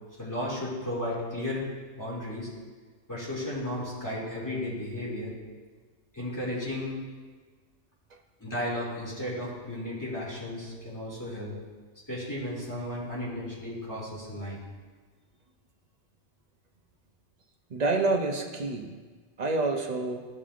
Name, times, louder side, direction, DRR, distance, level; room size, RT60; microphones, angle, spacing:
voice 1, 0.2-1.7 2.0-2.5 3.1-5.4 6.1-7.0 8.4-11.6 12.1-14.6, left 1 dB, 15° left, -7 dB, 2.4 m, -34 dB
voice 2, 17.7-19.0 19.4-20.3, right 3 dB, 40° right, 2 dB, 0.7 m, -28 dB
14.0 x 5.5 x 2.5 m, 1.4 s
omnidirectional pair, 1.3 m